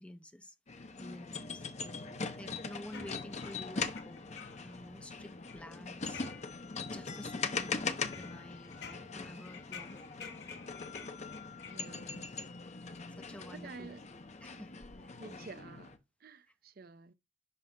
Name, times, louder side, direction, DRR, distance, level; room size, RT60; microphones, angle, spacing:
voice 1, 0.0-1.6 2.4-6.2 6.8-10.1 13.2-15.2, left 1 dB, 5° left, 0.7 m, -50 dB
sound 1, 0.7-16.0, left 4 dB, 40° left, 0.7 m, -41 dB
sound 2, 2.9-4.8 5.2-6.8 7.2-7.7 8.1-12.2, left 6 dB, 65° left, 1.3 m, -51 dB
voice 2, 11.7-12.3 13.5-14.1 15.2-15.9 16.2-17.1, right 4 dB, 55° right, 0.6 m, -50 dB
11.0 x 5.7 x 2.2 m
head